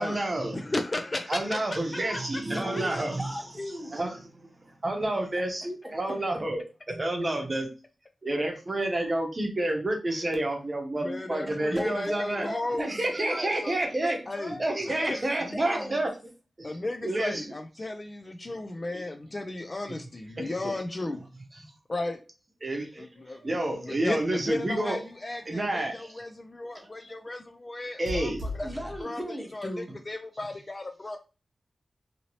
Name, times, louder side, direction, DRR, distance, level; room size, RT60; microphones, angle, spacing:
voice 1, 0.0-0.6 1.3-3.2 3.9-4.5 4.8-7.7 8.2-12.5 12.8-14.2 14.6-16.1 16.6-16.7 17.0-17.5 20.4-20.7 21.6-21.7 22.6-23.1 23.4-25.0 25.5-26.1 28.0-28.4, right 1 dB, 35° right, 0.8 m, -29 dB
voice 2, 0.5-1.8 2.7-2.8 10.1-10.3 11.0-13.8 14.3-14.6 14.9-16.0 16.6-21.3 21.9-22.2 23.0-28.7 29.0-29.2 29.5-31.2, left 2 dB, 30° left, 0.3 m, -35 dB
voice 3, 2.6-4.0 5.8-6.4 11.5-13.6 14.0-14.7 15.0-15.2 15.5-16.0 28.6-29.9, equal, ahead, 0.8 m, -37 dB
sound 1, 23.1-26.2 26.7-27.3 28.0-29.0, left 2 dB, 75° right, 1.0 m, -41 dB
2.8 x 2.7 x 3.0 m
wide cardioid pair, 120°, 0 cm